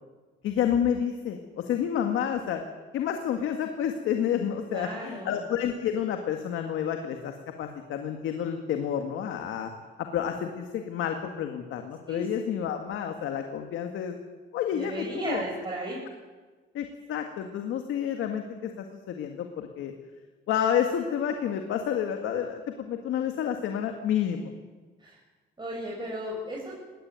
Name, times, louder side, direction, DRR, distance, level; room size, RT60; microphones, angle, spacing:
voice 1, 0.4-2.6 2.9-9.7 10.0-14.2 14.5-15.4 16.7-19.9 20.5-24.5, left 9 dB, 85° left, 5 dB, 2.0 m, -29 dB
voice 2, 4.7-5.4 12.1-12.2 14.7-16.0 25.0-25.2 25.6-26.8, right 1 dB, 25° right, -3 dB, 6.7 m, -35 dB
20.0 x 18.5 x 9.5 m, 1.4 s
cardioid pair, 90°, 20 cm